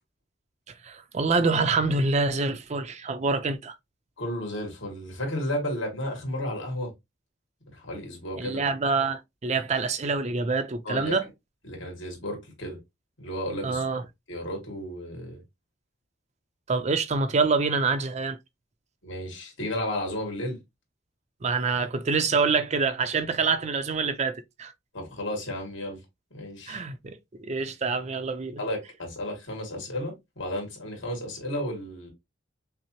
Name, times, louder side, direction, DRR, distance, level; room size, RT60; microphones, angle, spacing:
voice 1, 0.8-3.7 8.4-11.3 13.6-14.0 16.7-18.4 21.4-24.7 26.7-28.6, right 4 dB, 35° right, 0.5 m, -26 dB
voice 2, 4.2-6.9 7.7-8.6 10.8-11.2 11.6-12.8 13.2-13.8 14.3-15.4 19.0-20.6 24.9-26.0 26.3-26.8 28.6-32.1, left 1 dB, 75° left, 2.1 m, -33 dB
5.6 x 2.0 x 2.9 m
head